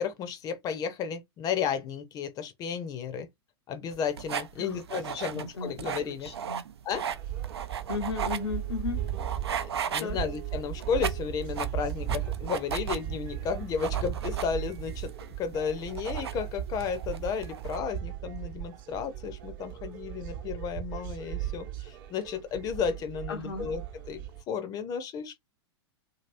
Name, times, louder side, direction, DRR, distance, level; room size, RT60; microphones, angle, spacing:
voice 1, 0.0-3.3 3.7-6.3 6.8-7.1 9.6-15.1 15.4-23.8 24.1-24.2 24.5-25.4, left 7 dB, 25° left, 0.6 m, -33 dB
sound 1, 3.9-17.8, right 8 dB, 70° right, 0.4 m, -37 dB
voice 2, 5.1-5.9 6.2-6.6 7.9-9.0 10.0-10.2 23.3-23.7, left 4 dB, 70° left, 0.6 m, -35 dB
sound 2, 7.1-24.4, right 11 dB, 50° right, 0.9 m, -37 dB
2.9 x 2.8 x 2.5 m
figure-of-eight pair, 95°, 14 cm